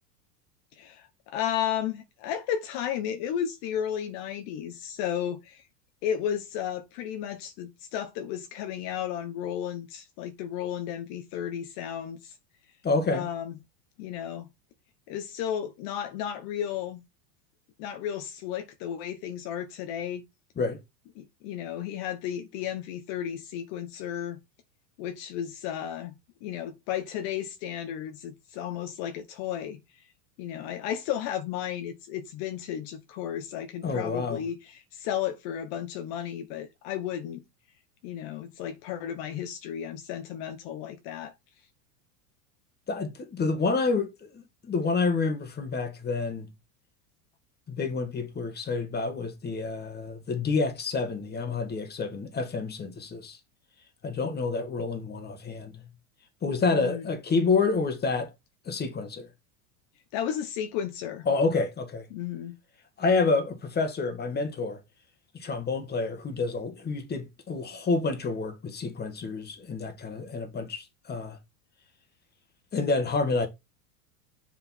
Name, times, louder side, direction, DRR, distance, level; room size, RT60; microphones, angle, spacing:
voice 1, 0.7-5.6 6.0-12.4 13.1-13.5 14.0-14.5 15.1-17.0 17.8-20.2 21.2-24.4 25.0-26.2 26.4-30.1 30.4-37.4 38.0-41.3 56.7-57.1 60.1-61.3 62.1-62.5, left 9 dB, 55° left, 1.2 m, -33 dB
voice 2, 12.8-13.3 20.6-20.8 33.8-34.4 42.9-46.5 47.7-53.4 54.0-55.9 56.4-58.3 58.7-59.3 61.3-62.1 63.0-64.8 65.3-71.4 72.7-73.5, left 4 dB, 20° left, 1.8 m, -28 dB
7.1 x 5.2 x 4.4 m
supercardioid pair, 120°, 46 cm